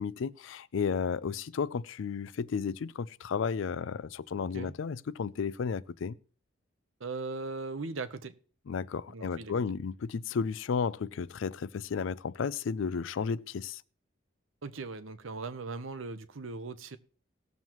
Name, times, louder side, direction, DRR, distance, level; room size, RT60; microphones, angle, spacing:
voice 1, 0.0-6.2 8.7-13.8, left 6 dB, 80° left, 0.4 m, -33 dB
voice 2, 7.0-8.3 9.1-9.5 14.6-17.0, right 3 dB, 85° right, 0.8 m, -39 dB
18.5 x 7.3 x 3.1 m
head